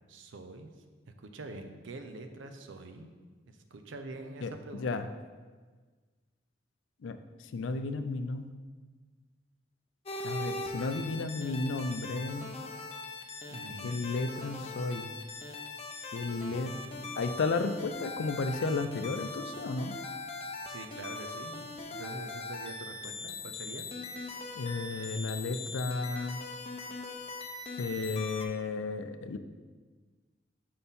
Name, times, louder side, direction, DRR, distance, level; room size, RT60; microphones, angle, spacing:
voice 1, 0.1-0.7 1.2-3.1 3.5-5.0 13.5-13.9 16.3-17.2 20.7-23.9, right 2 dB, 85° right, 7 dB, 0.6 m, -45 dB
voice 2, 4.4-5.1 7.0-7.2 7.5-8.5 10.2-12.5 13.8-15.1 16.1-16.7 17.2-19.9 24.6-26.4 27.8-29.4, left 3 dB, 80° left, 9 dB, 0.4 m, -33 dB
sound 1, 10.0-28.5, left 3 dB, 35° left, 0.6 m, -41 dB
5.6 x 4.3 x 5.3 m, 1.4 s
head